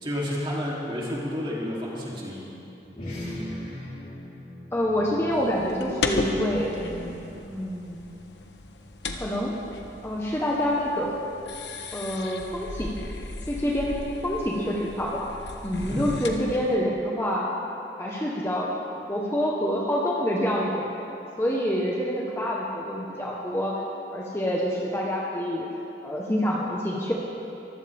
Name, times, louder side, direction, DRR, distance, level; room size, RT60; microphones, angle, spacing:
voice 1, 0.0-2.5 15.8-16.2, equal, 30° right, -5 dB, 3.2 m, -31 dB
sound 1, 2.8-7.6, left 1 dB, 45° left, 4.1 m, -40 dB
voice 2, 4.7-6.7 7.5-8.0 9.1-9.6 10.0-11.2 11.9-12.9 13.5-14.0 14.2-15.3 15.6-17.5 18.0-20.8 21.4-23.7 24.1-25.7 26.0-27.1, equal, 15° left, -3 dB, 1.2 m, -27 dB
sound 2, 5.3-16.7, left 3 dB, 85° left, 1.2 m, -36 dB
23.5 x 15.5 x 3.6 m, 2.9 s
head